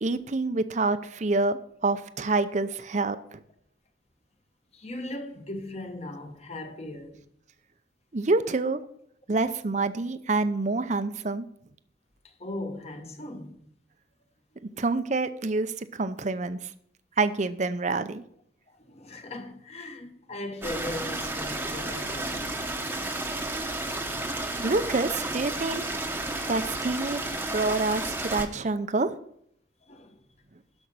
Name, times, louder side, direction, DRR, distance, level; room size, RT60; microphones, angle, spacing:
voice 1, 0.0-3.4 8.1-8.8 9.3-11.5 14.8-16.6 17.2-18.2 24.6-26.0 26.5-27.2 27.5-29.1, right 3 dB, 40° right, 0.6 m, -27 dB
voice 2, 4.7-7.2 12.2-13.6 14.7-14.8 18.7-22.6 27.3-27.4 29.8-30.2, left 1 dB, 35° left, 1.2 m, -38 dB
Stream, 20.6-28.5, right 2 dB, 10° right, 0.9 m, -32 dB
12.5 x 5.3 x 6.2 m
head